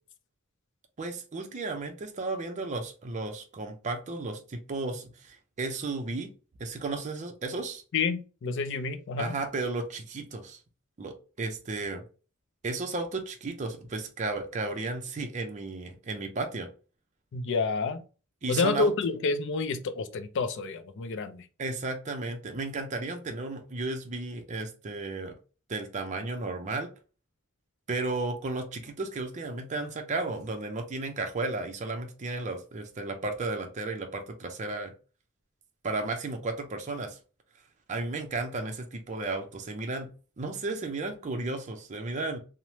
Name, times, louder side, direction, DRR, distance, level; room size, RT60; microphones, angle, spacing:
voice 1, 1.0-6.3 6.6-7.8 9.2-10.6 11.0-12.0 12.6-16.7 18.4-18.9 21.6-25.3 25.7-26.9 27.9-34.9 35.8-37.2 37.9-40.1 40.4-42.4, right 3 dB, 35° right, 0.5 m, -34 dB
voice 2, 7.9-9.3 17.3-18.0 18.5-21.5, left 4 dB, 60° left, 0.4 m, -29 dB
3.1 x 2.0 x 2.7 m
head